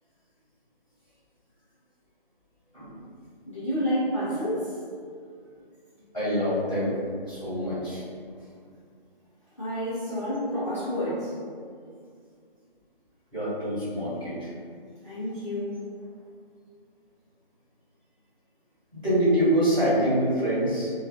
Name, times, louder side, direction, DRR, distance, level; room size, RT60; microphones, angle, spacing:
voice 1, 3.5-4.8 9.6-11.3 15.0-15.8, equal, 30° left, -14 dB, 0.6 m, -29 dB
voice 2, 6.1-6.9 7.2-8.0 13.3-14.5 18.9-20.9, equal, ahead, -37 dB, 0.9 m, -25 dB
2.5 x 2.3 x 2.4 m, 2.2 s
hypercardioid pair, 175°, 29 cm